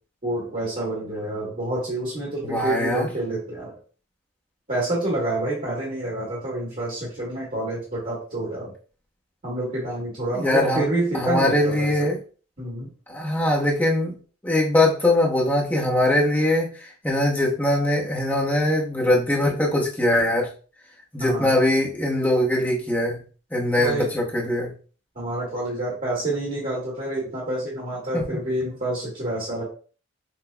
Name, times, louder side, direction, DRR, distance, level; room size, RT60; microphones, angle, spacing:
voice 1, 0.2-3.7 4.7-8.7 9.4-12.0 12.6-12.9 21.2-21.5 23.8-24.1 25.1-29.6, right 1 dB, 40° right, -5 dB, 1.3 m, -28 dB
voice 2, 2.4-3.1 10.3-10.8 11.1-12.2 13.1-14.1 14.4-20.5 21.1-23.2 23.5-24.7 28.1-28.2, left 1 dB, 10° left, -4 dB, 0.8 m, -22 dB
5.9 x 2.1 x 2.2 m, 0.39 s
head